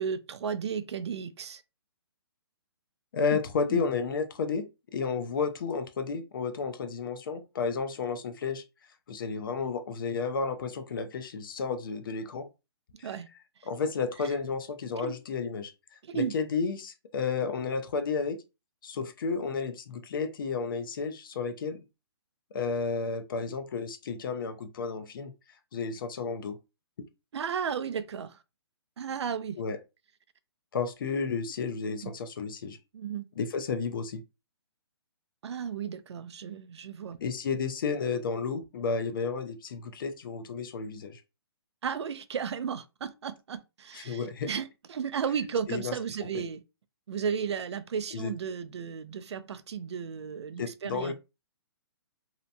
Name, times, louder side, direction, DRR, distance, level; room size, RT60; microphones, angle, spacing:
voice 1, 0.0-1.6 3.3-3.4 3.7-3.8 13.0-13.3 15.0-15.1 16.0-16.3 27.3-28.4 29.0-29.6 32.0-32.1 32.9-33.2 35.4-37.2 41.8-46.6 47.1-51.1, right 7 dB, 80° right, 0.4 m, -34 dB
voice 2, 3.1-4.7 4.9-8.6 9.1-12.5 13.0-13.1 13.7-15.7 16.1-18.4 18.8-21.8 22.5-25.3 25.7-26.6 29.6-29.8 30.7-32.8 33.4-34.2 37.2-41.2 43.9-44.5 45.7-45.9 46.3-46.4 48.1-48.3 50.6-51.1, left 5 dB, 50° left, 0.5 m, -32 dB
2.8 x 2.1 x 2.6 m
hypercardioid pair, 160°, 14 cm